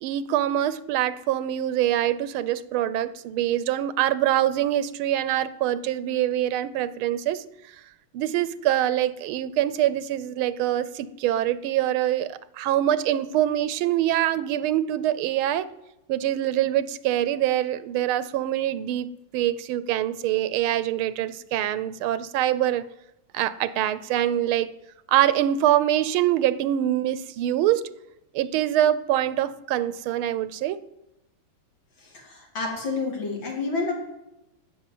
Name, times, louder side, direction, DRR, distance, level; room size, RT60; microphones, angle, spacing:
voice 1, 0.0-7.4 8.1-15.7 16.1-22.9 23.3-24.7 25.1-27.9 28.3-30.8, right 12 dB, 85° right, 16 dB, 1.5 m, -24 dB
voice 2, 32.1-33.9, left 4 dB, 65° left, 0 dB, 3.3 m, -29 dB
13.0 x 6.2 x 9.3 m, 0.91 s
omnidirectional pair, 2.3 m